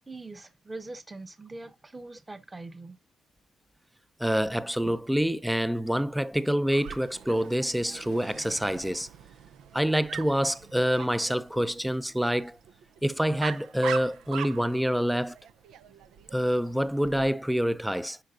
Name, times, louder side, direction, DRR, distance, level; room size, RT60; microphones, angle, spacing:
voice 1, 0.0-3.0, right 2 dB, 20° right, 1.0 m, -42 dB
voice 2, 4.2-9.1 9.7-12.6 13.0-15.4 16.3-18.2, equal, 5° right, 0.5 m, -26 dB
Dog, 6.7-17.3, right 9 dB, 80° right, 0.6 m, -43 dB
10.0 x 5.2 x 2.5 m
cardioid pair, 90°, 0 cm